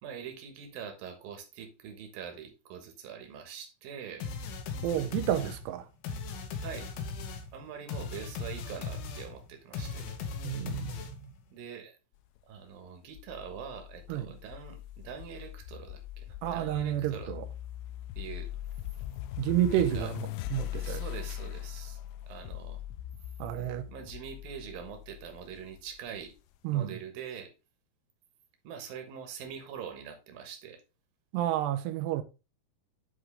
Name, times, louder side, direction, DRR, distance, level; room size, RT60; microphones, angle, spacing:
voice 1, 0.0-4.3 6.6-6.9 7.5-10.1 11.5-12.0 12.5-17.3 18.2-18.5 19.7-20.1 20.8-22.0 22.3-22.8 23.9-26.3 26.7-27.5 28.6-30.8, right 7 dB, 65° right, 2.9 m, -44 dB
sound 1, 4.2-11.4, left 4 dB, 70° left, 2.8 m, -38 dB
voice 2, 4.8-5.9 10.4-11.3 14.1-14.4 16.4-17.5 19.4-21.0 23.4-23.9 26.6-26.9 31.3-32.2, right 12 dB, 85° right, 2.7 m, -30 dB
sound 2, 13.2-26.3, left 13 dB, 90° left, 2.8 m, -41 dB
10.0 x 4.6 x 3.4 m
omnidirectional pair, 4.9 m